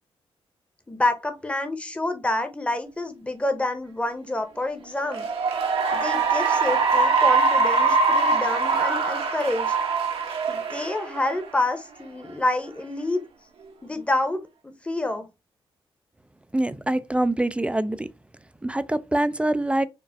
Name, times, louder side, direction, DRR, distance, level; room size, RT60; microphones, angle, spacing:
voice 1, 0.9-5.3 5.9-10.0 10.5-13.2 13.8-15.3, left 2 dB, 10° left, 0.9 m, -28 dB
Cheering / Applause, 5.0-11.7, right 4 dB, 70° right, 1.1 m, -23 dB
voice 2, 16.5-18.1 18.6-19.9, right 1 dB, 10° right, 0.4 m, -24 dB
4.6 x 2.4 x 3.4 m
cardioid pair, 65°, 10 cm